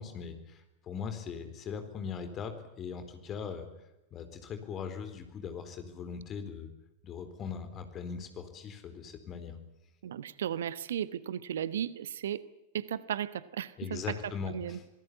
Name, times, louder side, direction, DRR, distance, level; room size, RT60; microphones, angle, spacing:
voice 1, 0.0-3.7 4.1-6.7 7.0-9.6 13.8-14.8, left 6 dB, 30° left, 8 dB, 4.1 m, -40 dB
voice 2, 10.0-12.4 12.7-14.8, right 10 dB, 60° right, 17 dB, 1.0 m, -35 dB
27.0 x 19.0 x 8.6 m, 0.88 s
figure-of-eight pair, 90°, 0 cm